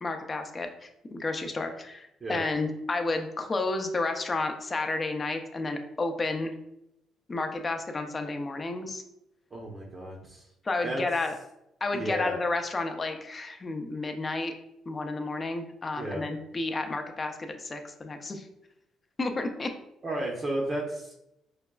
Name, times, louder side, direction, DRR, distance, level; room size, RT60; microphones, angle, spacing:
voice 1, 0.0-6.5 7.3-9.0 10.6-11.3 11.8-14.5 14.9-18.5 19.2-19.7, left 3 dB, 30° left, 5 dB, 0.5 m, -31 dB
voice 2, 2.2-2.5 9.5-10.5 10.8-11.0 11.9-12.3 16.0-16.2 20.0-21.1, right 1 dB, 35° right, -1 dB, 0.6 m, -33 dB
4.7 x 2.2 x 2.2 m, 0.83 s
supercardioid pair, 75°, 0 cm